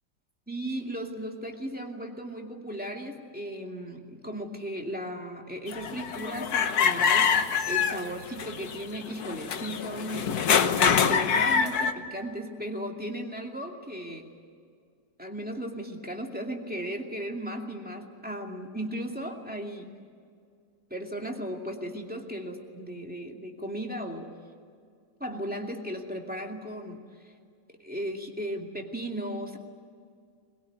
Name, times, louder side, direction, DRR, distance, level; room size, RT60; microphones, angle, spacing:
voice 1, 0.5-14.3 15.2-19.9 20.9-24.3 25.2-27.0 27.7-29.6, equal, 5° right, 1 dB, 2.4 m, -36 dB
sound 1, 5.7-11.9, left 6 dB, 60° left, 1.5 m, -25 dB
22.5 x 21.5 x 9.5 m, 2.2 s
omnidirectional pair, 1.9 m